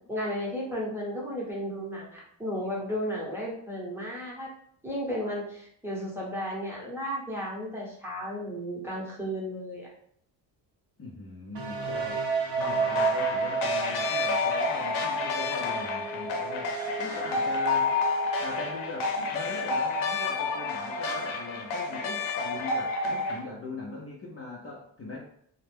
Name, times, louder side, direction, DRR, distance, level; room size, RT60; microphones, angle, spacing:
voice 1, 0.1-4.5 4.8-9.9 17.0-17.1, equal, 5° right, -4 dB, 1.0 m, -34 dB
voice 2, 11.0-12.2 12.6-17.9 18.4-25.2, left 2 dB, 30° left, -4 dB, 0.7 m, -41 dB
sound 1, 11.5-19.3, right 5 dB, 60° right, 0.7 m, -32 dB
sound 2, 12.6-23.4, left 4 dB, 85° left, 0.7 m, -30 dB
2.3 x 2.2 x 3.3 m, 0.66 s
cardioid pair, 80°, 47 cm